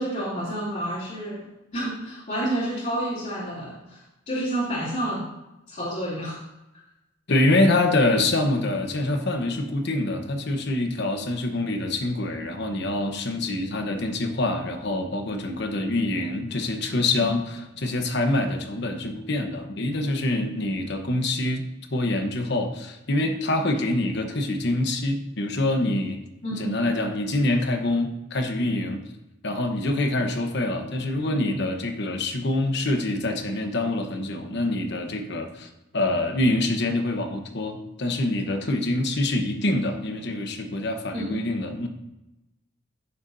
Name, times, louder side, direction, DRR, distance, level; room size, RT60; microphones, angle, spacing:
voice 1, 0.0-1.5 1.7-5.3 5.7-6.4 17.1-17.3 26.4-26.7 41.1-41.4, right 1 dB, 40° left, -10 dB, 2.9 m, -29 dB
voice 2, 7.3-21.6 21.9-26.2 26.5-29.0 29.4-35.7 35.9-41.9, left 2 dB, 55° left, 5 dB, 1.1 m, -25 dB
15.0 x 6.9 x 2.7 m, 0.96 s
head